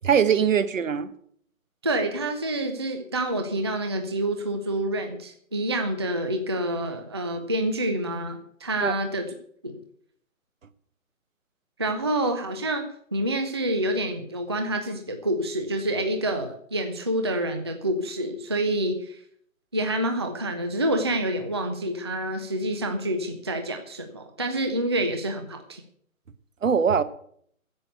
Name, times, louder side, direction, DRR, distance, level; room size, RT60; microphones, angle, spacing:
voice 1, 0.0-1.1 8.8-8.9 26.6-27.0, right 7 dB, 65° right, 15 dB, 1.1 m, -21 dB
voice 2, 1.8-9.3 9.6-9.8 11.8-19.2 19.7-25.8, right 1 dB, 20° right, 6 dB, 0.5 m, -27 dB
10.5 x 8.2 x 8.0 m, 0.64 s
hypercardioid pair, 155°, 43 cm